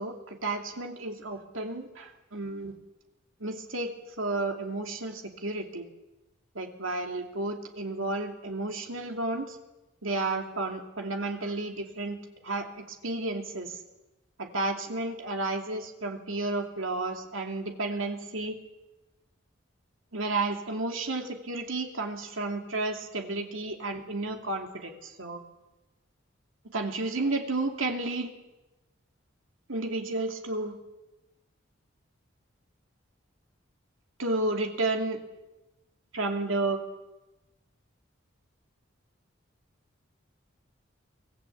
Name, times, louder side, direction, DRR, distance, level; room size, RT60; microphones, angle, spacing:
voice 1, 0.0-2.7 3.4-5.9 6.5-9.6 10.0-12.2 12.4-13.8 14.4-18.6 20.1-25.4 26.7-28.3 29.7-30.8 34.2-35.2 36.1-36.8, right 2 dB, 85° right, 3 dB, 2.7 m, -32 dB
24.0 x 16.5 x 8.3 m, 1.0 s
head